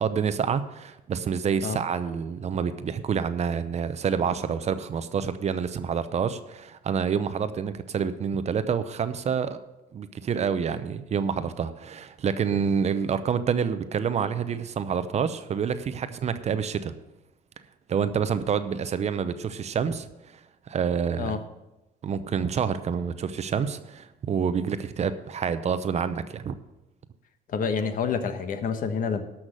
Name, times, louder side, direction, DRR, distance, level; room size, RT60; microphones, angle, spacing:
voice 1, 0.0-9.6 9.9-16.9 17.9-20.4 20.7-21.4 22.0-26.6, right 7 dB, 40° right, 12 dB, 0.7 m, -28 dB
voice 2, 27.5-29.2, left 6 dB, 55° left, 9 dB, 1.1 m, -28 dB
12.5 x 5.9 x 6.6 m, 0.99 s
cardioid pair, 110°, 17 cm